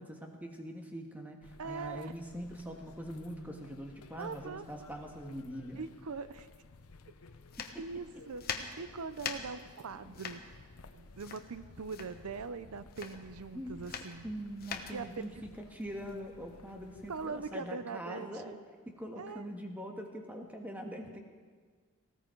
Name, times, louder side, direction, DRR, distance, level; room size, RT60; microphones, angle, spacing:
voice 1, 0.0-5.8 7.6-8.0 9.9-10.1 13.5-13.8 14.2-18.5 18.8-21.2, equal, 5° right, 2 dB, 1.6 m, -43 dB
sound 1, 1.4-17.5, left 3 dB, 85° left, 0.8 m, -56 dB
voice 2, 1.6-2.1 4.2-4.7 5.7-6.5 7.8-10.4 10.9-14.3 14.9-15.4 17.1-18.6 19.2-19.5, right 4 dB, 80° right, 13 dB, 0.6 m, -42 dB
sound 2, 7.4-16.7, left 6 dB, 45° left, 1.1 m, -43 dB
19.0 x 16.5 x 4.6 m, 1.5 s
head